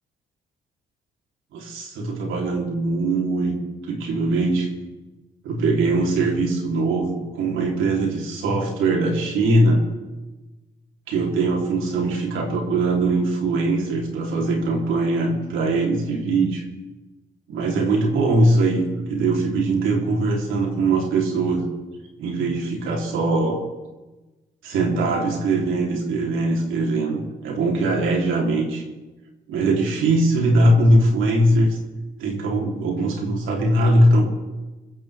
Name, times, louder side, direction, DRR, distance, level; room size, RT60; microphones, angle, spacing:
voice 1, 1.5-3.6 3.8-4.7 5.4-9.8 11.1-16.6 17.5-18.8 19.1-21.7 22.2-23.6 24.6-28.8 29.5-31.8 32.2-34.3, right 2 dB, 85° right, 0 dB, 3.5 m, -21 dB
25.0 x 14.5 x 3.5 m, 1.2 s
cardioid pair, 90°, 20 cm